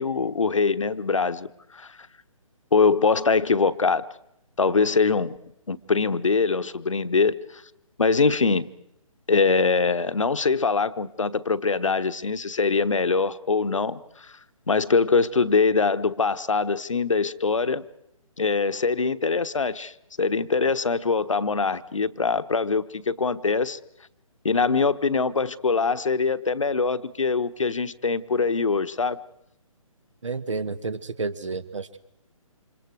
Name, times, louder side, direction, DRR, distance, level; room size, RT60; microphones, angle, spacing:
voice 1, 0.0-2.0 2.7-4.0 4.6-5.4 5.7-7.4 8.0-8.7 9.3-14.4 14.7-17.8 18.4-23.8 24.4-29.2, left 4 dB, 60° left, 12 dB, 1.2 m, -23 dB
voice 2, 30.2-32.0, right 4 dB, 60° right, 14 dB, 1.8 m, -30 dB
29.5 x 27.0 x 4.8 m, 0.81 s
figure-of-eight pair, 140°, 18 cm